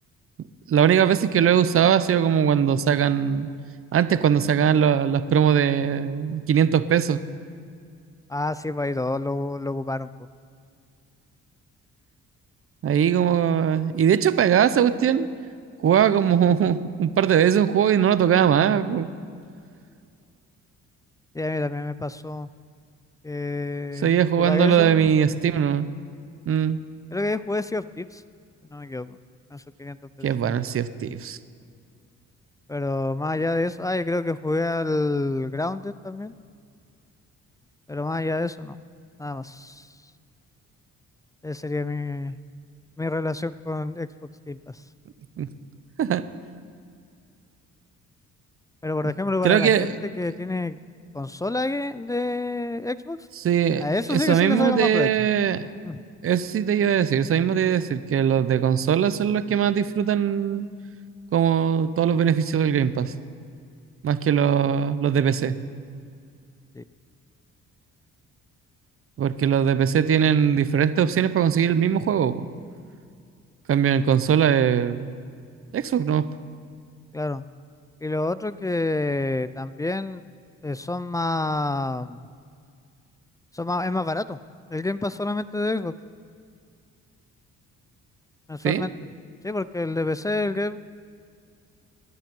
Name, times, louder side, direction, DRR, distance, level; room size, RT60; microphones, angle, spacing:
voice 1, 0.7-3.5 3.9-7.2 12.8-15.3 15.8-19.1 24.0-25.9 26.5-26.8 30.2-31.4 45.4-45.5 46.0-46.2 49.4-49.9 53.4-53.8 54.1-55.7 56.2-60.7 61.3-63.1 64.0-65.6 69.2-72.5 73.7-75.1 75.7-76.3 88.6-88.9, right 8 dB, 45° right, 14 dB, 0.7 m, -20 dB
voice 2, 8.3-10.1 21.3-22.5 23.2-25.4 27.1-28.2 28.7-29.2 29.5-30.3 32.7-36.3 37.9-38.8 39.2-39.9 41.4-42.4 43.0-44.1 44.5-44.8 48.8-50.8 51.1-53.2 53.8-55.1 55.8-56.0 66.7-66.8 77.1-77.4 78.0-80.2 80.6-82.2 83.5-84.4 84.7-85.9 88.5-88.9 89.4-90.8, left 2 dB, 10° left, 15 dB, 0.3 m, -28 dB
16.0 x 10.5 x 5.4 m, 2.3 s
cardioid pair, 90°, 30 cm